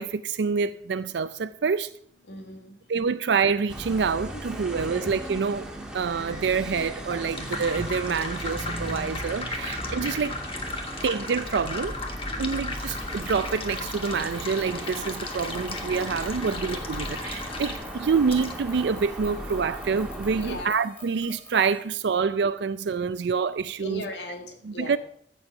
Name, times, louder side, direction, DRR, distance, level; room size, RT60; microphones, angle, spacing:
voice 1, 0.0-1.9 2.9-5.7 5.9-10.4 11.0-12.0 12.4-24.0 24.6-25.0, right 5 dB, 70° right, 0.4 m, -27 dB
voice 2, 2.3-2.8 4.3-4.4 6.5-6.7 7.3-7.5 8.2-8.3 12.3-12.6 13.0-13.1 16.4-17.4 20.4-20.8 23.8-25.0, left 1 dB, 70° left, 1.9 m, -40 dB
sound 1, 3.7-20.6, right 1 dB, 5° right, 1.7 m, -37 dB
sound 2, 6.9-18.5, left 3 dB, 35° left, 1.4 m, -36 dB
sound 3, 12.7-21.9, left 1 dB, 10° left, 6.1 m, -50 dB
15.0 x 7.1 x 5.7 m
head